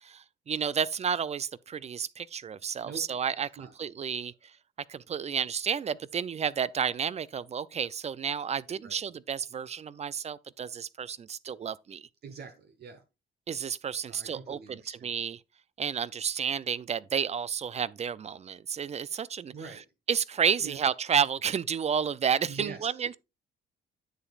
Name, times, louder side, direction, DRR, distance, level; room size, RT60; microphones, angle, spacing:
voice 1, 0.0-4.3 4.9-12.1 13.5-14.6 14.9-15.4 15.8-19.5 20.1-23.1, right 7 dB, 35° right, 0.4 m, -31 dB
voice 2, 12.2-13.0 14.0-15.1 19.5-19.8 20.6-20.8 22.5-23.2, right 5 dB, 55° right, 1.0 m, -44 dB
10.0 x 7.0 x 2.4 m
cardioid pair, 90°, 20 cm